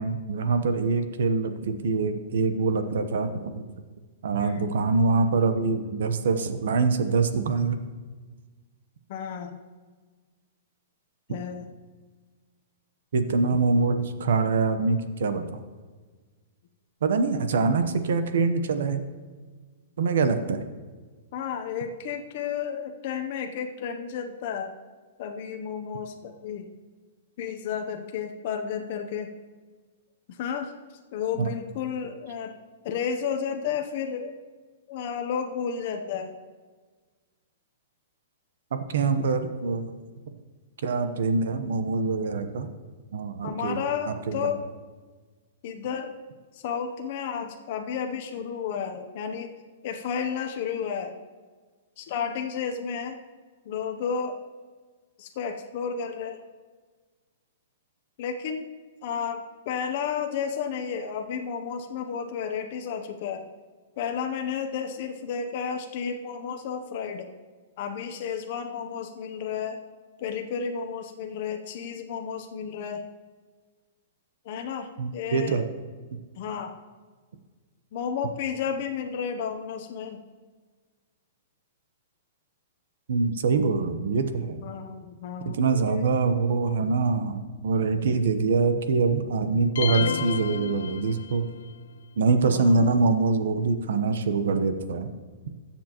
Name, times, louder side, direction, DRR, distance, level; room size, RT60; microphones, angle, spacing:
voice 1, 0.0-3.6 4.2-7.8 13.1-15.6 17.0-19.0 20.0-20.6 31.4-31.5 38.7-39.9 40.8-42.7 43.1-44.5 75.0-75.6 83.1-84.6 85.5-91.4 92.2-95.1, right 4 dB, 70° right, 9 dB, 0.9 m, -24 dB
voice 2, 9.1-9.6 11.3-11.7 21.3-24.7 25.2-26.7 27.4-29.3 30.3-30.7 31.1-32.5 32.8-34.3 34.9-36.3 43.4-44.6 45.6-46.2 46.5-49.5 49.8-51.1 52.0-53.2 53.7-54.4 55.2-56.4 58.2-58.7 59.0-63.4 64.0-67.3 67.8-69.8 70.2-73.0 74.4-75.6 76.4-76.8 77.9-80.2 84.6-86.1 92.5-92.9, left 7 dB, 40° left, 4 dB, 0.7 m, -32 dB
sound 1, 89.8-91.6, left 8 dB, 80° left, 0.4 m, -31 dB
20.5 x 7.2 x 3.0 m, 1.4 s
hypercardioid pair, 175°, 0 cm